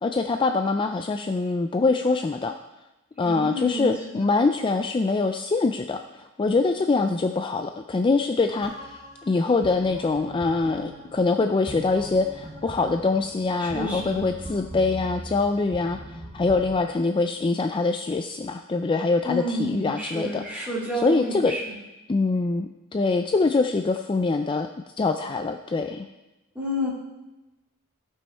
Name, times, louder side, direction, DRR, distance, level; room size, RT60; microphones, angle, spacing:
voice 1, 0.0-2.6 3.2-20.7 21.0-21.5 22.1-24.7 25.0-26.1, left 3 dB, 25° left, 6 dB, 0.3 m, -24 dB
voice 2, 3.2-4.2 13.6-14.3 19.2-21.6 26.5-26.9, equal, 5° right, -6 dB, 2.7 m, -30 dB
sound 1, 8.6-16.7, right 1 dB, 35° right, 1.6 m, -41 dB
15.5 x 5.6 x 4.3 m, 1.0 s
head